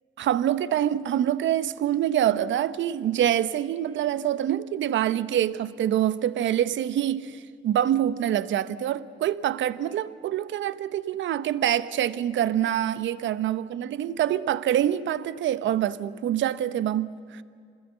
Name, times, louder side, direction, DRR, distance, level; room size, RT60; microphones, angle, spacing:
voice 1, 0.2-17.4, right 11 dB, 70° right, 0.9 m, -25 dB
26.5 x 20.0 x 8.0 m
cardioid pair, 90°, 20 cm